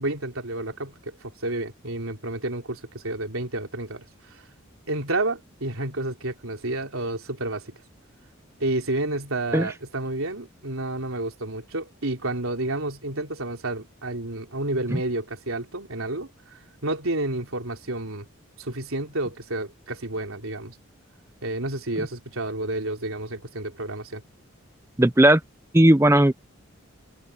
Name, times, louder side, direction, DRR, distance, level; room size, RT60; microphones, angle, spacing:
voice 1, 0.0-4.0 4.3-4.4 4.9-7.7 8.6-18.3 18.6-20.7 21.4-24.2, right 2 dB, 85° right, 3.5 m, -30 dB
voice 2, 25.0-25.4 25.7-26.3, right 1 dB, 10° right, 0.6 m, -16 dB
open air
head